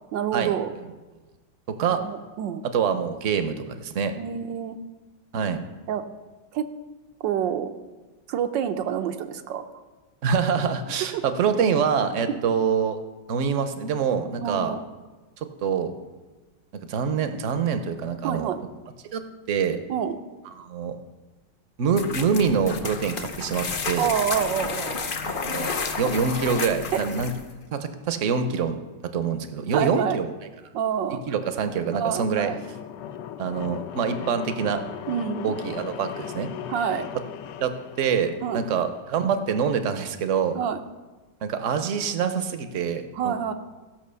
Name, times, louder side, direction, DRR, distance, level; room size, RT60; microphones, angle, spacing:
voice 1, 0.1-0.7 2.0-2.6 4.2-4.8 5.9-6.0 6.5-6.7 7.2-7.7 8.3-9.6 11.0-11.2 12.3-12.4 14.4-14.8 18.2-18.6 19.9-20.2 24.0-25.3 26.9-27.0 29.7-30.2 30.7-31.2 31.9-32.6 35.1-35.5 36.7-37.1 38.4-38.6 40.5-40.8 43.1-43.5, right 8 dB, 80° right, 8 dB, 1.4 m, -27 dB
voice 2, 2.7-4.2 5.3-5.6 10.2-13.0 13.3-14.8 15.6-15.9 16.7-18.5 19.1-19.2 19.5-19.8 20.6-21.0 21.8-24.1 25.2-27.3 27.7-30.3 31.3-32.5 33.4-34.9 35.4-36.5 37.6-40.6 41.4-43.3, right 6 dB, 55° right, 9 dB, 0.9 m, -25 dB
sound 1, 21.9-27.5, left 4 dB, 50° left, 0.6 m, -31 dB
sound 2, 31.2-39.1, left 9 dB, 75° left, 1.2 m, -38 dB
15.0 x 5.8 x 6.8 m, 1.2 s
omnidirectional pair, 2.0 m